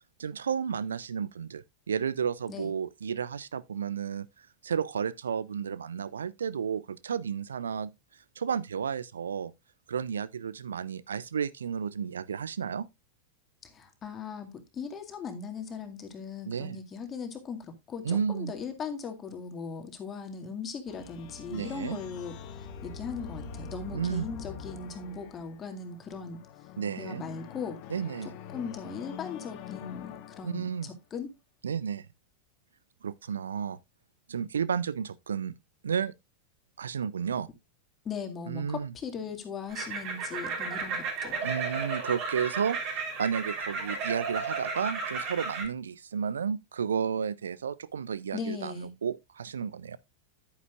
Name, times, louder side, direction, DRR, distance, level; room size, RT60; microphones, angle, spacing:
voice 1, 0.2-4.3 4.6-7.9 8.4-9.5 9.9-12.9 16.5-16.8 18.0-18.5 21.5-22.0 23.9-24.3 26.8-27.2 27.9-28.3 30.4-30.9 31.6-32.1 33.0-33.8 34.3-35.5 35.8-36.1 36.8-37.5 38.5-38.9 41.4-50.0, right 7 dB, 70° right, 0.4 m, -32 dB
voice 2, 13.6-22.3 22.8-26.4 27.0-27.8 28.5-31.3 38.0-41.4 48.3-48.9, left 5 dB, 25° left, 2.1 m, -39 dB
sound 1, 20.9-30.9, left 6 dB, 45° left, 1.2 m, -44 dB
sound 2, 39.7-45.6, right 4 dB, 40° right, 3.6 m, -34 dB
10.5 x 9.4 x 2.4 m
figure-of-eight pair, 90°, 0 cm